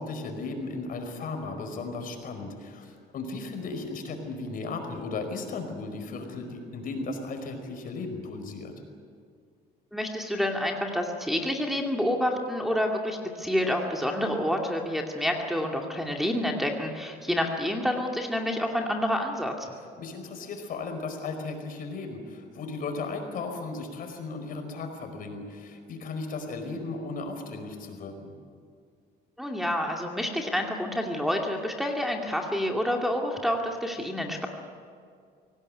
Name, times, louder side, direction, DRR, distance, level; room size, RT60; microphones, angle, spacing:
voice 1, 0.0-8.7 20.0-28.3, left 3 dB, 55° left, 5 dB, 4.9 m, -36 dB
voice 2, 9.9-19.5 29.4-34.5, left 1 dB, ahead, 0 dB, 2.4 m, -28 dB
24.5 x 18.0 x 9.9 m, 2.2 s
cardioid pair, 110°, 17 cm